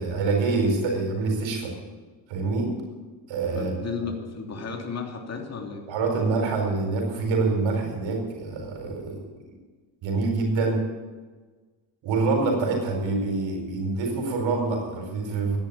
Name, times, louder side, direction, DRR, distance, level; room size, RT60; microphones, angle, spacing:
voice 1, 0.0-1.7 2.3-2.7 3.3-3.7 5.9-9.2 10.0-10.8 12.0-15.6, right 3 dB, 65° right, 2 dB, 4.8 m, -25 dB
voice 2, 3.5-5.9, left 5 dB, 30° left, 2 dB, 3.2 m, -34 dB
14.5 x 10.5 x 8.9 m, 1.4 s
supercardioid pair, 95°, 48 cm